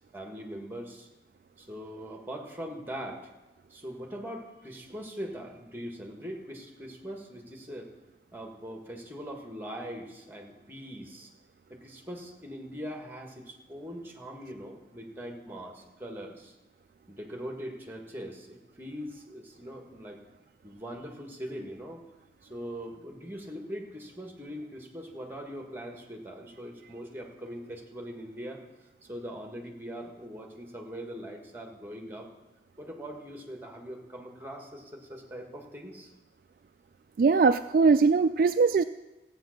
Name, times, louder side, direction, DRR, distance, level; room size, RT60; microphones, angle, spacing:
voice 1, 0.1-1.1 1.6-3.3 3.7-8.0 8.3-11.3 11.7-16.5 17.1-20.2 20.6-22.0 22.5-28.6 29.1-32.3 32.8-36.1, equal, 10° right, 2 dB, 1.6 m, -41 dB
voice 2, 37.2-38.8, right 4 dB, 50° right, 10 dB, 0.3 m, -21 dB
14.5 x 8.5 x 6.5 m, 1.1 s
head